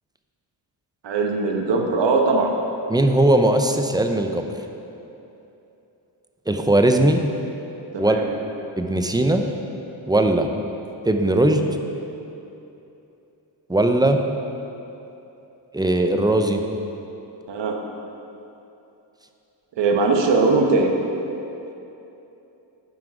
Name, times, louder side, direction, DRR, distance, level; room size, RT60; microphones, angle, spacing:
voice 1, 1.0-2.5 7.9-8.2 17.5-17.8 19.8-20.9, right 3 dB, 65° right, 2 dB, 1.2 m, -20 dB
voice 2, 2.9-4.4 6.5-7.2 8.0-8.2 8.8-9.4 10.1-10.5 11.1-11.6 13.7-14.2 15.7-16.6, right 1 dB, 10° right, 5 dB, 0.6 m, -19 dB
10.0 x 5.8 x 4.8 m, 2.9 s
cardioid pair, 80°, 46 cm